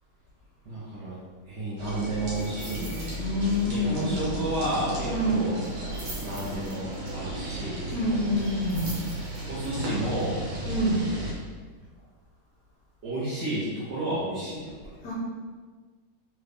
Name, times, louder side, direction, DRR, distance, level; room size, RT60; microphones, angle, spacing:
voice 1, 0.6-3.2 3.6-5.6 6.2-7.9 9.5-10.4 13.0-15.0, right 1 dB, 65° right, -9 dB, 1.4 m, -32 dB
sound 1, 1.8-11.3, right 1 dB, 85° right, 1.8 m, -34 dB
sound 2, 2.3-3.2 3.5-3.7 4.0-4.1 5.6-7.1 8.4-9.7 10.2-10.3, right 1 dB, 40° right, 0.5 m, -44 dB
voice 2, 3.2-4.3 5.0-5.4 7.9-9.0 10.6-11.0 15.0-15.1, left 1 dB, 65° left, -7 dB, 1.2 m, -27 dB
3.8 x 3.2 x 3.3 m, 1.4 s
omnidirectional pair, 2.2 m